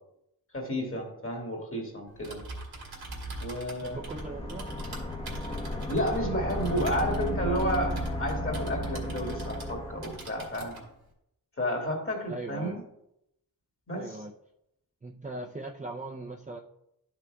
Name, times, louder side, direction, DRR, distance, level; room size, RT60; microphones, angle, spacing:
voice 1, 0.5-2.4 3.4-4.0 5.9-10.8 11.6-12.8 13.9-14.2, equal, 35° left, 0 dB, 2.1 m, -31 dB
Typing, 2.1-9.8 10.0-10.8, right 2 dB, 90° right, 2.3 m, -44 dB
sound 1, 3.8-10.2, equal, 15° left, 1.0 m, -34 dB
voice 2, 3.8-4.7 12.3-12.8 13.9-14.3 15.0-16.6, right 2 dB, 20° right, -1 dB, 0.6 m, -39 dB
12.0 x 5.9 x 2.3 m, 0.81 s
wide cardioid pair, 95°, 37 cm